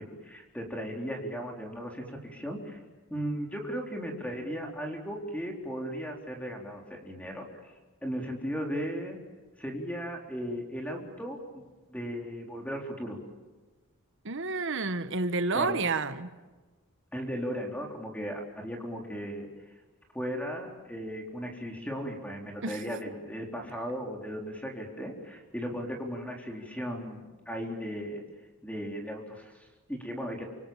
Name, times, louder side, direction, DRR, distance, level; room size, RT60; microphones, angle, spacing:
voice 1, 0.0-2.8 3.1-7.7 8.0-9.2 9.6-11.6 11.9-13.2 15.5-15.8 17.1-19.5 20.1-28.2 28.6-30.5, equal, 5° left, 4.1 m, -36 dB
voice 2, 14.2-16.3 22.6-22.8, right 3 dB, 60° right, 1.3 m, -30 dB
29.0 x 27.0 x 7.3 m
head